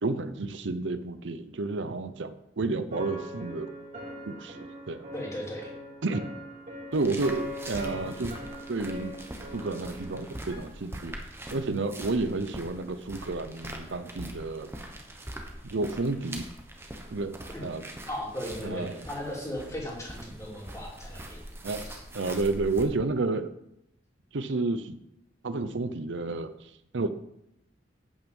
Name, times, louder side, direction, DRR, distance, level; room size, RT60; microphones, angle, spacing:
voice 1, 0.0-3.7 4.3-5.0 6.0-6.2 6.9-8.4 8.7-9.1 9.5-11.1 11.5-14.7 15.7-16.4 17.1-17.3 17.6-17.8 18.6-19.0 21.6-21.9 22.1-23.5 24.3-25.0 25.4-27.1, right 3 dB, 70° right, 11 dB, 0.7 m, -31 dB
sound 1, 2.9-10.6, equal, 35° right, 3.5 m, -41 dB
voice 2, 5.1-5.7 17.5-17.7 18.1-21.4 21.8-22.0, equal, 15° left, -3 dB, 3.0 m, -37 dB
sound 2, 6.9-22.8, right 1 dB, 15° right, 1.3 m, -43 dB
8.9 x 8.8 x 5.4 m, 0.80 s
head